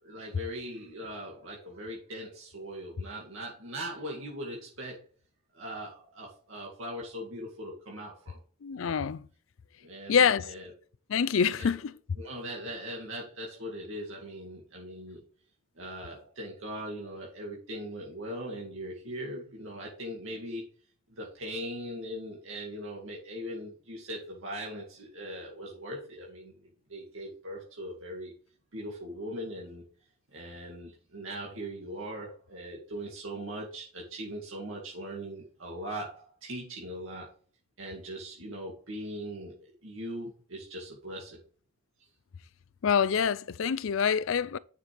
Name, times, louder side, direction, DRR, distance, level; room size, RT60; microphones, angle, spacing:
voice 1, 0.0-5.0 5.5-8.4 8.8-9.0 9.8-10.7 11.6-11.8 12.2-15.2 15.8-20.6 21.1-26.6 26.9-28.3 28.7-29.8 30.3-37.3 37.8-41.4, equal, 65° right, 2.1 m, -40 dB
voice 2, 8.6-9.3 10.1-10.5 11.1-11.9 42.8-44.6, left 7 dB, 65° left, 0.4 m, -26 dB
9.7 x 5.9 x 3.4 m
head